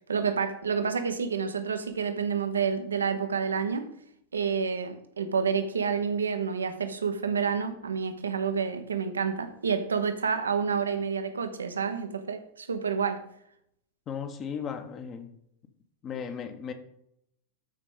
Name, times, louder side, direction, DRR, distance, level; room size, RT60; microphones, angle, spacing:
voice 1, 0.1-3.9 4.3-13.2, right 6 dB, 70° right, 9 dB, 0.9 m, -29 dB
voice 2, 14.1-15.3 16.0-16.7, left 7 dB, 30° left, 7 dB, 1.1 m, -36 dB
13.0 x 5.0 x 3.8 m, 0.74 s
figure-of-eight pair, 90°, 0 cm